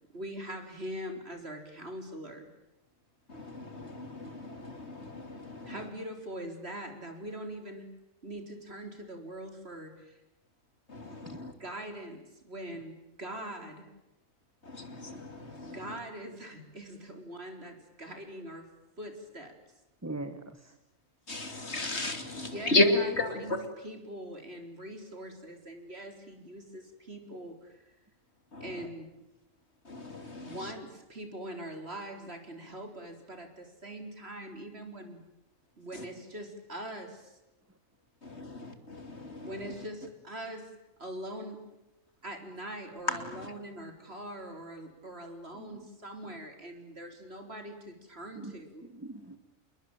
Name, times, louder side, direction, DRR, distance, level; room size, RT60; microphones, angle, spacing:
voice 1, 0.1-2.5 5.7-7.9 8.2-10.2 11.6-13.9 15.6-18.7 19.0-19.5 22.5-23.6 23.8-27.8 28.6-29.1 30.4-35.2 35.8-37.4 39.4-40.7 41.0-41.6 42.2-48.8, right 1 dB, 50° right, 6 dB, 4.5 m, -42 dB
voice 2, 3.3-5.9 10.9-11.5 14.6-16.0 21.3-23.7 28.5-28.9 29.8-30.7 35.9-36.0 38.2-39.8 43.1-43.5, left 2 dB, 55° left, 8 dB, 3.4 m, -33 dB
voice 3, 20.0-20.7 45.5-45.9 46.2-46.3 48.3-48.5 48.8-49.4, right 2 dB, 10° right, 9 dB, 1.5 m, -42 dB
28.5 x 21.5 x 9.2 m, 0.95 s
omnidirectional pair, 1.4 m